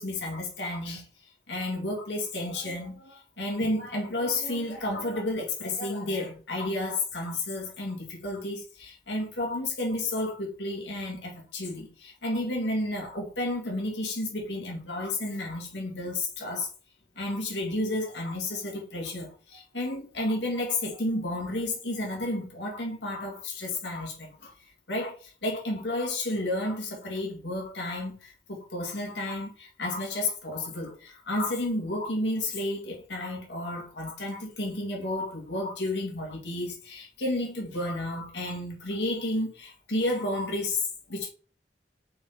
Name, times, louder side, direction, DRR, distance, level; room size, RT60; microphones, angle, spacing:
voice 1, 0.0-16.7 17.2-24.5 24.9-41.3, left 1 dB, 85° left, 2.4 m, -32 dB
5.5 x 4.4 x 3.9 m
head